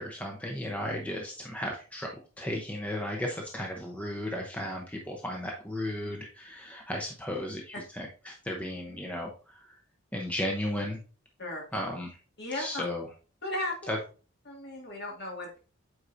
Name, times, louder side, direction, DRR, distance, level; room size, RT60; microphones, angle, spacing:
voice 1, 0.0-9.3 10.1-11.0 11.7-12.2 12.6-13.1 13.9-14.0, left 1 dB, 5° left, 0 dB, 0.7 m, -35 dB
voice 2, 12.4-12.8 13.4-13.7 14.5-15.6, left 1 dB, 55° left, -1 dB, 2.0 m, -35 dB
7.9 x 4.7 x 2.6 m, 0.35 s
head